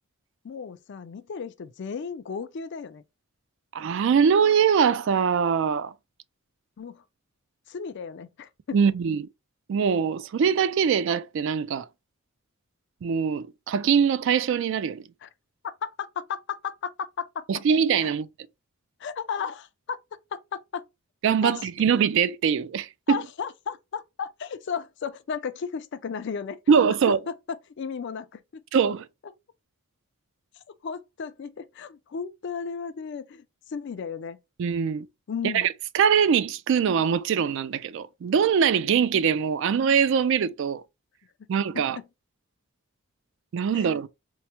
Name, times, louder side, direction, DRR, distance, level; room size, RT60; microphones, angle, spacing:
voice 1, 0.4-3.0 6.8-7.0 7.7-8.8 15.2-15.3 15.8-17.5 19.0-20.0 20.3-20.8 21.4-21.5 23.1-26.6 27.3-28.6 30.8-34.4 35.3-35.7 41.7-42.0 43.7-43.9, left 6 dB, 55° left, 0.4 m, -34 dB
voice 2, 3.7-5.9 8.7-9.3 9.7-11.9 13.0-15.0 17.5-18.3 21.2-23.2 26.7-27.2 28.7-29.1 34.6-35.1 35.4-40.8 41.5-42.0 43.5-44.1, right 7 dB, 55° right, 0.3 m, -22 dB
4.5 x 2.0 x 2.8 m
head